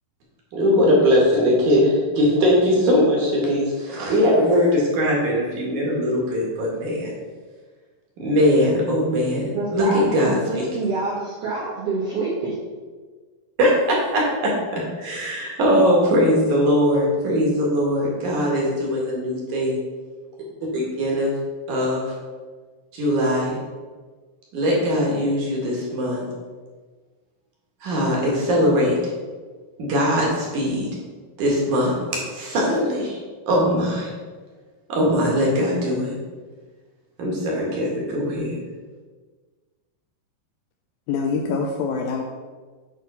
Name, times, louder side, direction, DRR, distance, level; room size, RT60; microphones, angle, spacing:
voice 1, 0.5-7.1 8.2-10.7 13.6-14.2 15.0-19.8 20.7-21.3 21.7-22.1 22.9-23.6 24.5-26.2 27.8-29.0 29.8-30.9 31.4-31.9 32.3-33.2 33.5-34.1 34.9-36.2 37.2-38.6, equal, 60° right, -3 dB, 2.5 m, -20 dB
voice 2, 9.3-12.5, right 3 dB, 90° right, -6 dB, 1.3 m, -27 dB
voice 3, 41.1-42.2, left 5 dB, 80° left, 1 dB, 2.2 m, -24 dB
9.1 x 3.9 x 5.4 m, 1.4 s
omnidirectional pair, 4.7 m